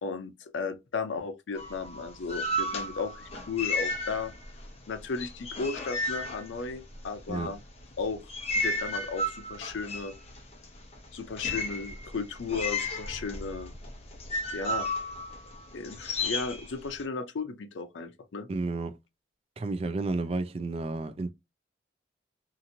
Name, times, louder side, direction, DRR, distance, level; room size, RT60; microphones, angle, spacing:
voice 1, 0.0-4.3 4.9-7.6 8.0-8.2 8.6-10.1 11.1-13.7 14.5-14.9 15.7-18.5, left 4 dB, 90° left, 0.5 m, -35 dB
sound 1, 1.6-4.7 4.9-7.2 7.8-17.0, left 1 dB, 35° left, 0.8 m, -33 dB
voice 2, 18.5-18.9 19.6-21.3, right 3 dB, 30° right, 0.3 m, -31 dB
2.9 x 2.5 x 2.6 m
head